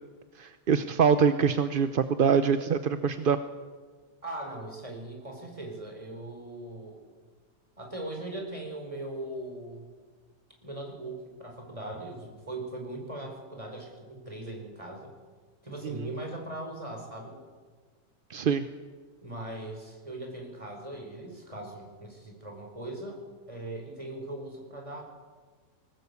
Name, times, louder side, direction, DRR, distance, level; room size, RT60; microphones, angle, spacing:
voice 1, 0.4-3.4 15.9-16.0 18.3-18.6, right 6 dB, 45° right, 10 dB, 0.8 m, -24 dB
voice 2, 4.2-7.0 7.8-9.9 10.6-15.1 15.6-17.4 19.2-23.2 23.5-25.0, right 1 dB, 20° right, 1 dB, 5.0 m, -39 dB
21.0 x 19.0 x 8.3 m, 1.5 s
omnidirectional pair, 1.6 m